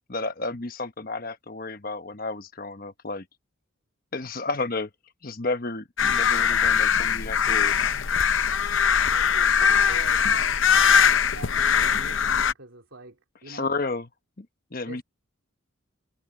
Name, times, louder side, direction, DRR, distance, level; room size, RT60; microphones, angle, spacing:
voice 1, 0.1-3.2 4.1-4.9 5.2-8.0 13.5-14.1 14.4-14.5 14.7-15.0, left 3 dB, 45° left, 1.1 m, -32 dB
sound 1, 6.0-12.5, left 7 dB, 70° left, 0.7 m, -21 dB
voice 2, 8.9-13.7 14.8-15.0, right 2 dB, 70° right, 3.0 m, -45 dB
head